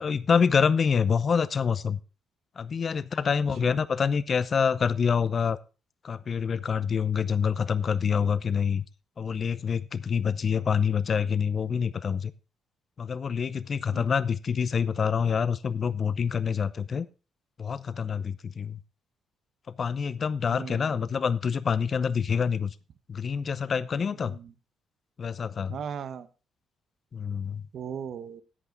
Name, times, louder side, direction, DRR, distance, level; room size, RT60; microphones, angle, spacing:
voice 1, 0.0-2.0 2.6-5.6 6.0-8.8 9.2-12.3 13.0-17.1 17.6-18.8 19.7-22.7 23.1-24.4 25.2-25.8 27.1-27.6, left 6 dB, 45° left, 17 dB, 0.6 m, -26 dB
voice 2, 20.5-20.9 24.2-24.5 25.7-26.3 27.7-28.4, right 7 dB, 65° right, 13 dB, 0.9 m, -37 dB
11.0 x 8.3 x 3.8 m, 0.31 s
cardioid pair, 90°, 0 cm